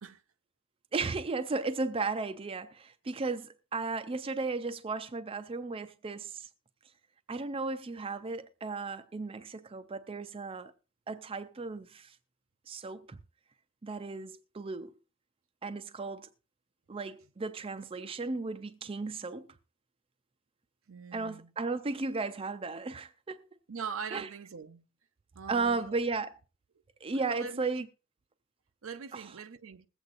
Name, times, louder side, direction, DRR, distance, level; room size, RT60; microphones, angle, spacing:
voice 1, 0.9-6.5 7.3-10.7 11.1-12.2 12.7-13.2 13.8-14.9 15.6-16.3 16.9-19.5 21.1-23.4 24.1-24.3 25.5-26.3 27.0-27.9 29.1-29.2, right 3 dB, 25° right, 0.4 m, -35 dB
voice 2, 20.9-21.5 23.7-24.8 25.3-26.0 27.1-27.6 28.8-29.9, right 6 dB, 75° right, 0.6 m, -42 dB
21.0 x 8.0 x 2.5 m
head